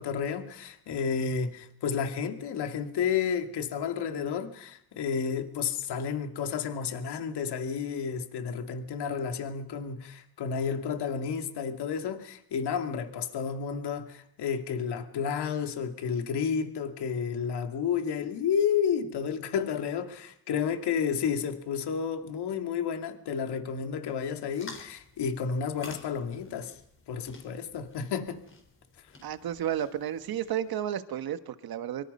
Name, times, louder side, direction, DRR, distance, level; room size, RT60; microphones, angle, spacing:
voice 1, 0.0-26.7 27.1-28.4, left 7 dB, 75° left, 6 dB, 2.5 m, -31 dB
sound 1, 24.5-30.8, left 3 dB, 30° left, 4.6 m, -50 dB
voice 2, 29.2-32.0, right 10 dB, 60° right, 10 dB, 1.5 m, -32 dB
25.0 x 24.5 x 5.5 m, 0.71 s
cardioid pair, 140°, 41 cm